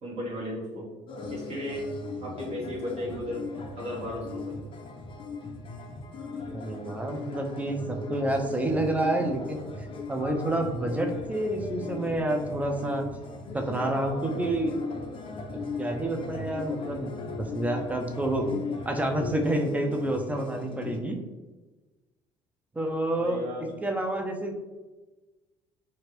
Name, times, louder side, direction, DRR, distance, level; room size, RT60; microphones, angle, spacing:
voice 1, 0.0-0.9 1.3-1.9 2.2-3.5 3.8-4.6 23.1-23.7, equal, 40° right, -5 dB, 1.4 m, -35 dB
sound 1, 1.1-21.0, left 3 dB, 35° left, 0.5 m, -38 dB
voice 2, 6.5-13.0 13.5-14.7 15.5-21.2 22.7-23.4 23.8-24.6, right 1 dB, 10° right, 3 dB, 0.5 m, -29 dB
2.8 x 2.5 x 3.0 m, 1.2 s
hypercardioid pair, 55°, 16 cm